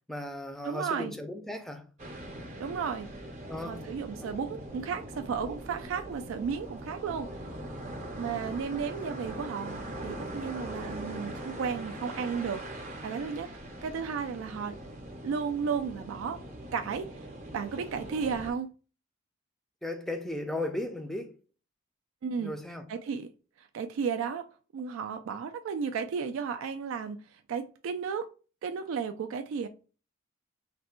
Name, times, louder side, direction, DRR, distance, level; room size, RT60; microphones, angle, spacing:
voice 1, 0.1-1.8 3.5-3.9 19.8-21.3 22.4-22.9, left 1 dB, ahead, 0.4 m, -36 dB
voice 2, 0.6-1.2 2.6-3.1 3.6-7.3 8.2-13.5 13.8-14.8 15.2-16.4 16.7-17.2 17.5-18.7 22.2-22.5 22.9-23.3 23.6-24.4 24.7-28.3 28.6-29.7, right 6 dB, 70° right, 0.3 m, -34 dB
sound 1, 2.0-18.5, right 1 dB, 35° right, 0.7 m, -41 dB
3.3 x 2.1 x 4.2 m
head